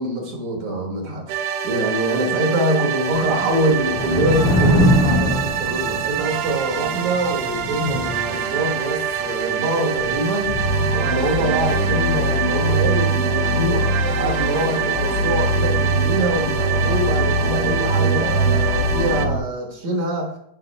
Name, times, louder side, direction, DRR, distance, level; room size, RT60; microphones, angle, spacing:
voice 1, 0.0-20.3, right 1 dB, 60° right, 0 dB, 2.6 m, -24 dB
sound 1, 1.3-19.3, right 8 dB, 80° right, 2.1 m, -26 dB
Thunder / Rain, 3.1-11.5, equal, 60° left, 2.6 m, -24 dB
sound 2, 10.5-19.4, right 1 dB, 40° left, 1.9 m, -22 dB
8.8 x 4.0 x 5.3 m, 0.75 s
omnidirectional pair, 4.0 m